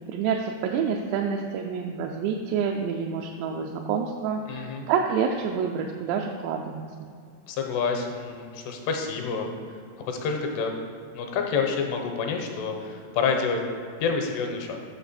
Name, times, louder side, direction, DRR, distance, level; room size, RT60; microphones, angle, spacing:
voice 1, 0.1-6.8, right 6 dB, 85° right, 1 dB, 2.6 m, -28 dB
voice 2, 4.5-4.9 7.5-9.5 10.1-10.7 11.1-13.6 14.0-14.8, left 5 dB, 85° left, 3 dB, 2.7 m, -28 dB
7.9 x 6.5 x 4.2 m, 2.3 s
omnidirectional pair, 5.0 m